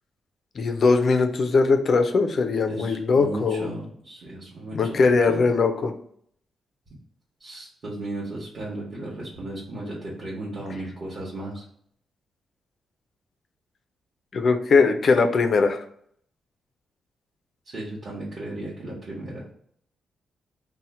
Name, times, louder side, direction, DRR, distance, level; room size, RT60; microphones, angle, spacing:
voice 1, 0.6-3.7 4.7-5.9 14.3-15.8, left 4 dB, 40° left, 6 dB, 0.3 m, -20 dB
voice 2, 2.7-5.5 7.4-11.6 17.6-19.4, right 2 dB, 35° right, -7 dB, 0.9 m, -35 dB
2.8 x 2.1 x 4.0 m, 0.65 s
wide cardioid pair, 175°, 0 cm